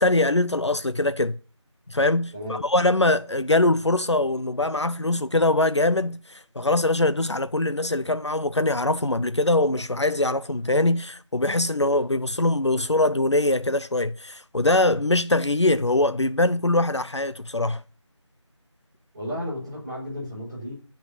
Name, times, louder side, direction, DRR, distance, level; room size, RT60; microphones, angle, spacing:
voice 1, 0.0-1.4 1.9-17.8, left 2 dB, 65° left, 0.7 m, -22 dB
voice 2, 2.3-2.6 19.1-20.7, left 1 dB, 10° right, 5.9 m, -33 dB
11.5 x 5.8 x 8.5 m
figure-of-eight pair, 170°, 16 cm